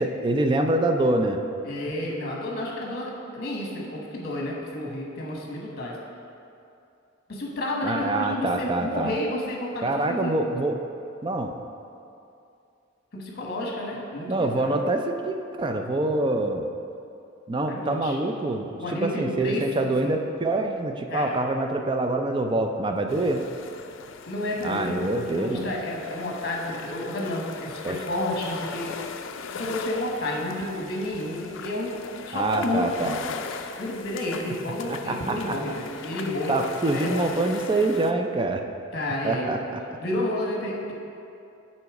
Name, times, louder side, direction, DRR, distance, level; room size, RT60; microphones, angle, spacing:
voice 1, 0.0-1.4 7.8-9.2 9.8-10.8 11.2-11.5 14.3-16.7 17.5-23.4 24.6-25.6 27.8-28.0 32.3-33.2 34.9-35.5 36.5-38.6 39.2-39.8, right 2 dB, 25° right, 5 dB, 0.4 m, -25 dB
voice 2, 1.6-6.0 7.3-10.4 13.1-14.8 17.7-18.2 18.8-20.2 21.1-21.4 24.3-29.0 29.5-32.0 32.3-33.0 33.5-36.6 36.9-37.5 38.9-39.6 40.0-40.9, left 1 dB, 55° left, -2 dB, 1.2 m, -31 dB
sound 1, 23.1-38.1, left 5 dB, 70° left, 0.4 m, -39 dB
6.9 x 4.3 x 4.8 m, 2.6 s
head